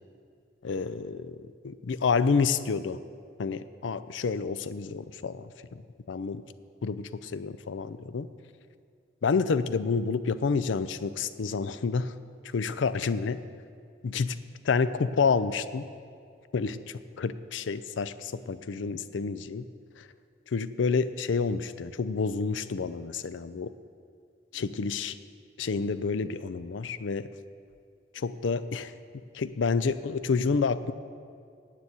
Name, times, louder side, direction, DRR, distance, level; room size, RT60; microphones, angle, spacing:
voice 1, 0.6-1.4 1.6-3.0 3.4-5.8 6.1-6.5 6.8-8.3 9.2-12.1 12.5-13.4 14.0-15.9 16.5-19.6 20.0-20.1 20.5-23.7 24.5-25.2 25.6-27.3 28.1-28.9 29.3-30.9, left 5 dB, 80° left, 14 dB, 0.5 m, -29 dB
9.7 x 7.6 x 8.2 m, 2.3 s
head